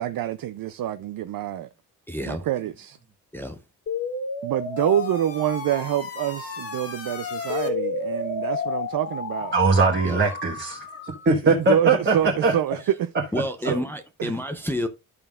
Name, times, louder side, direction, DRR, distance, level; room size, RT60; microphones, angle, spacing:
voice 1, 0.0-1.7 2.2-3.0 4.4-9.5 11.3-13.1 13.6-13.8 14.2-14.3, right 11 dB, 65° right, 0.6 m, -27 dB
voice 2, 2.1-2.4 3.3-3.6 10.0-10.2 12.2-12.3 13.3-14.9, left 1 dB, 5° left, 0.6 m, -29 dB
sound 1, 3.9-11.3, left 4 dB, 40° left, 1.4 m, -31 dB
voice 3, 9.5-10.8 11.2-12.5, right 3 dB, 30° right, 1.4 m, -20 dB
12.5 x 5.6 x 2.4 m
wide cardioid pair, 160°, 37 cm